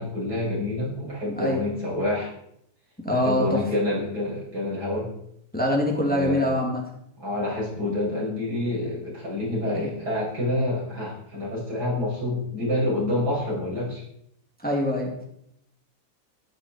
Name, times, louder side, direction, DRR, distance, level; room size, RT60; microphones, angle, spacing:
voice 1, 0.0-2.3 3.1-5.1 6.1-6.5 7.2-14.0, left 1 dB, 70° right, -6 dB, 7.1 m, -27 dB
voice 2, 3.0-3.6 5.5-6.8 9.7-9.9 14.6-15.2, left 1 dB, 5° left, 0 dB, 2.4 m, -24 dB
14.0 x 12.0 x 4.4 m, 0.74 s
omnidirectional pair, 1.8 m